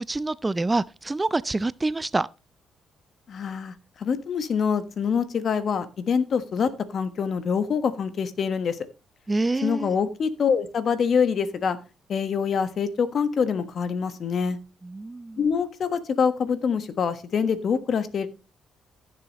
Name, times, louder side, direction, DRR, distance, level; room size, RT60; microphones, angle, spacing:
voice 1, 0.1-2.3 9.3-9.9 14.9-15.4, right 2 dB, 20° right, 0.4 m, -26 dB
voice 2, 3.3-8.8 9.6-11.8 12.1-14.6 15.4-18.3, left 6 dB, 55° left, 1.3 m, -25 dB
15.0 x 6.9 x 3.0 m
cardioid pair, 90°, 0 cm